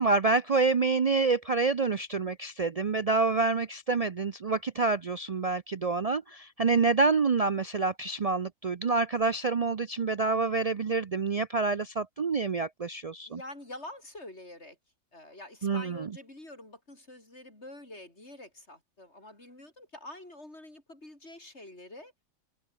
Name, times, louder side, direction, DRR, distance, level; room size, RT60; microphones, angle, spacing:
voice 1, 0.0-13.4 15.6-16.0, right 4 dB, 55° right, 0.4 m, -27 dB
voice 2, 13.3-14.8 15.1-22.1, left 1 dB, 50° left, 7.3 m, -46 dB
open air
omnidirectional pair, 1.4 m